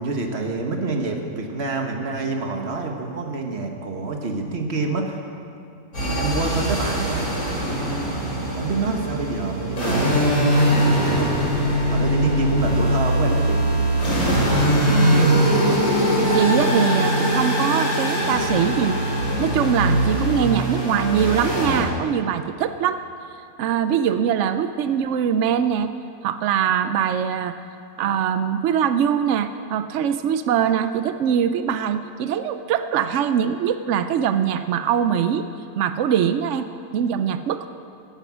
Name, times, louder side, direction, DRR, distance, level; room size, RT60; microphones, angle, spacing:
voice 1, 0.0-5.2 6.0-8.2 8.5-10.2 11.2-11.6 11.9-13.7, right 3 dB, 40° right, 3 dB, 1.5 m, -27 dB
sound 1, 5.9-21.8, equal, 55° left, 4.3 m, -21 dB
voice 2, 14.8-15.4 16.3-23.0 23.6-25.9 26.2-27.5 28.0-35.5 35.8-36.7 36.9-37.7, right 8 dB, 80° right, 10 dB, 0.6 m, -22 dB
16.0 x 9.9 x 6.2 m, 2.7 s
omnidirectional pair, 1.9 m